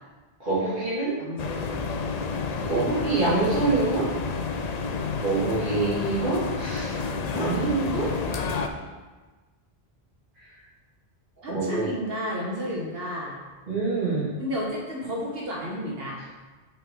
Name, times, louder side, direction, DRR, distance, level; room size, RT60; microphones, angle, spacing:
voice 1, 0.4-1.2 2.6-4.1 5.2-6.9 7.3-8.1 11.5-11.9 13.7-14.3, right 3 dB, 55° right, -13 dB, 2.1 m, -25 dB
voice 2, 1.2-1.9 11.4-13.4 14.4-16.3, equal, 70° right, -3 dB, 1.4 m, -32 dB
sound 1, 1.4-8.7, left 4 dB, 50° left, 0.5 m, -30 dB
5.7 x 5.7 x 3.7 m, 1.3 s
omnidirectional pair, 1.0 m